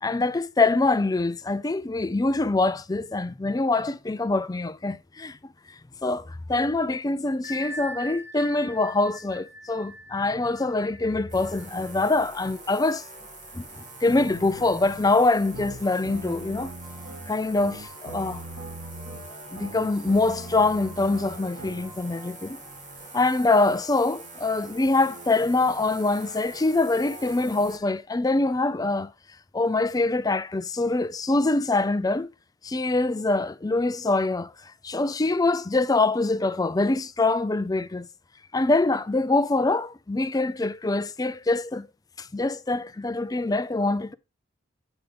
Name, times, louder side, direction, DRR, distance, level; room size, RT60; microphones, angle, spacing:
voice 1, 0.0-5.4 6.0-13.0 13.5-16.7 17.3-18.4 19.6-22.6 23.1-29.1 29.5-32.3 32.6-38.1 38.5-41.9 42.2-44.1, left 2 dB, 20° left, 0.4 m, -24 dB
Bell, 7.4-12.9, equal, 20° right, 3.7 m, -42 dB
sound 1, 11.3-27.8, right 2 dB, 40° right, 2.2 m, -44 dB
sound 2, 14.1-22.0, right 1 dB, 90° right, 2.7 m, -41 dB
9.0 x 5.2 x 3.3 m
head